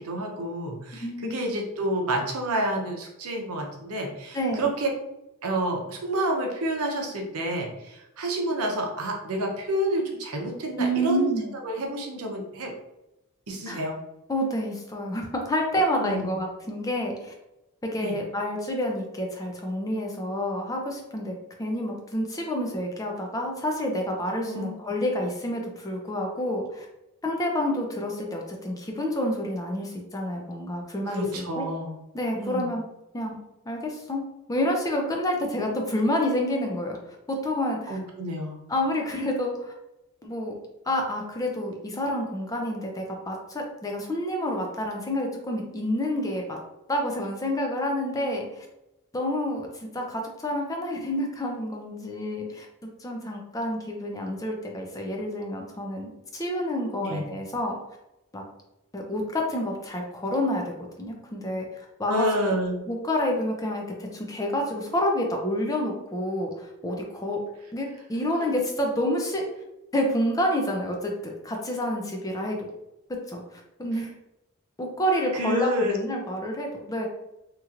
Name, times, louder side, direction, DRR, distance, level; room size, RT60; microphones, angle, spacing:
voice 1, 0.0-4.9 5.4-11.3 11.6-12.7 13.5-14.0 16.0-16.4 18.0-18.2 24.4-24.8 31.0-31.9 32.3-32.7 37.9-38.6 57.0-57.2 62.1-62.8 75.3-76.0, right 1 dB, 90° right, 1 dB, 0.7 m, -29 dB
voice 2, 1.0-1.3 4.3-4.7 10.8-11.5 13.7-13.8 14.3-17.3 17.8-21.3 21.6-26.9 27.2-31.6 32.1-32.8 33.1-33.4 33.7-38.0 38.7-39.7 40.2-40.5 40.9-46.6 46.9-48.7 49.1-57.8 58.3-58.4 58.9-60.6 61.0-62.3 62.9-67.4 67.7-69.4 69.9-72.6 73.1-74.1 74.8-77.1, left 1 dB, 15° left, 1 dB, 0.4 m, -28 dB
2.9 x 2.9 x 2.4 m, 0.92 s
head